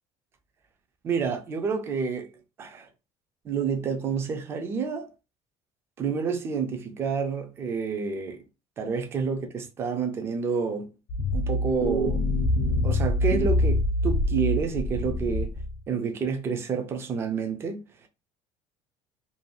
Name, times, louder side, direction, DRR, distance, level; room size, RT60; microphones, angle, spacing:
voice 1, 1.0-2.3 2.6-2.9 3.4-5.1 6.0-8.4 8.8-10.9 11.3-12.3 12.8-15.5 15.9-18.1, right 5 dB, 20° right, 0.4 m, -29 dB
sound 1, 11.1-15.8, left 1 dB, 40° left, 0.5 m, -25 dB
2.5 x 2.2 x 2.9 m
cardioid pair, 180°, 11 cm